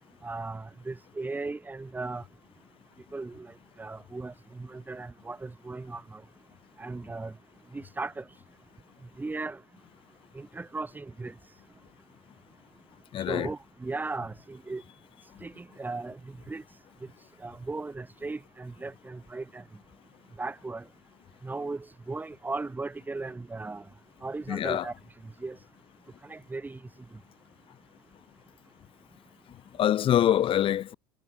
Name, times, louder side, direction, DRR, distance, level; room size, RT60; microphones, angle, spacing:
voice 1, 0.2-2.2 3.1-3.5 3.8-6.2 6.8-7.3 7.7-8.2 9.2-9.6 10.3-11.3 13.3-14.8 15.4-16.2 16.5-16.6 17.4-19.6 20.4-20.8 21.4-23.8 24.2-24.9 25.4-25.6 26.2-26.8, right 3 dB, 15° right, 4.0 m, -37 dB
voice 2, 13.1-13.5 24.5-24.9 29.8-30.9, left 11 dB, 40° left, 3.4 m, -24 dB
hypercardioid pair, 90°, 13 cm